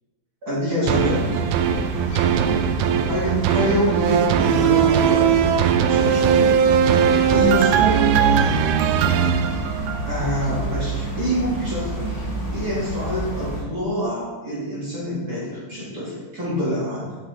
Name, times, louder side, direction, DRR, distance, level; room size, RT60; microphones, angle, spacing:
voice 1, 0.4-1.3 3.0-5.4 5.8-6.5 7.3-8.0 10.0-12.2 12.5-17.2, equal, 30° right, -8 dB, 2.5 m, -26 dB
sound 1, 0.8-13.6, equal, 35° left, 2.2 m, -30 dB
sound 2, 0.9-10.3 10.7-10.8, right 8 dB, 85° right, 2.0 m, -19 dB
7.4 x 6.7 x 3.9 m, 1.2 s
omnidirectional pair, 3.6 m